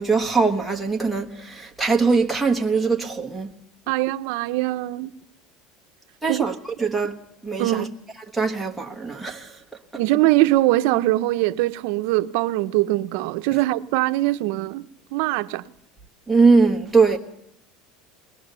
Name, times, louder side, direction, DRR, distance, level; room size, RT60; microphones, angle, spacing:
voice 1, 0.0-3.5 6.2-7.2 7.4-7.9 8.3-9.5 16.3-17.2, right 4 dB, ahead, 1.3 m, -21 dB
voice 2, 3.9-5.1 6.3-6.4 7.6-7.9 10.0-15.6, right 17 dB, 60° right, 0.7 m, -22 dB
21.5 x 20.5 x 6.8 m
cardioid pair, 175°, 0 cm